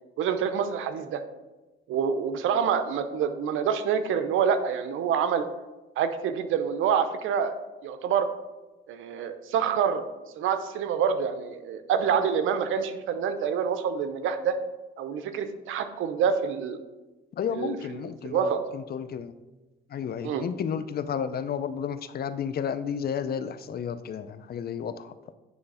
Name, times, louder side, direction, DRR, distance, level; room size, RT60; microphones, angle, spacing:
voice 1, 0.2-1.2 1.9-5.4 6.0-7.5 7.8-8.3 8.9-10.0 10.4-14.6 15.0-16.8 17.5-18.6 20.2-20.4, right 7 dB, 85° right, 9 dB, 0.7 m, -27 dB
voice 2, 17.4-19.3 19.9-25.3, left 7 dB, 50° left, 12 dB, 0.5 m, -32 dB
9.2 x 3.3 x 5.5 m, 1.1 s
cardioid pair, 90°, 20 cm